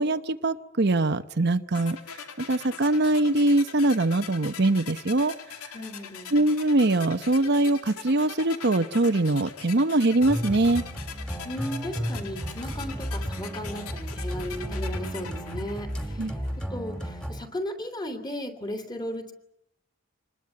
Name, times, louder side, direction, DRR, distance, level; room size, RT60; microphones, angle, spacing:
voice 1, 0.0-5.4 6.3-10.8 16.2-16.3, right 2 dB, 50° right, 9 dB, 0.9 m, -23 dB
sound 1, 1.7-16.7, left 7 dB, 80° left, 2.4 m, -42 dB
voice 2, 5.7-6.3 11.4-19.3, equal, 20° left, 6 dB, 3.2 m, -36 dB
sound 2, 10.2-17.4, equal, 5° left, 2.5 m, -33 dB
26.5 x 21.0 x 8.4 m, 0.85 s
head